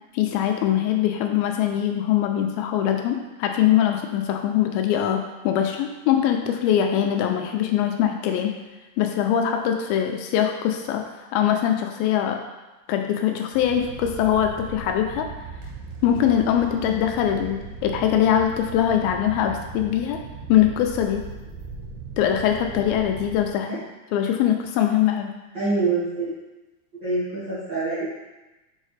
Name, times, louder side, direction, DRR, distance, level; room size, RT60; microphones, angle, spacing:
voice 1, 0.1-8.5 9.0-11.0 11.3-12.4 12.9-15.3 16.0-20.2 20.5-21.2 22.2-23.7 24.1-25.3, left 10 dB, 85° left, 4 dB, 2.3 m, -22 dB
sound 1, 13.5-23.4, right 4 dB, 75° right, 1.9 m, -38 dB
voice 2, 25.5-26.3 27.0-28.2, right 3 dB, 45° right, -13 dB, 1.6 m, -25 dB
6.4 x 4.8 x 3.2 m, 1.1 s
omnidirectional pair, 4.3 m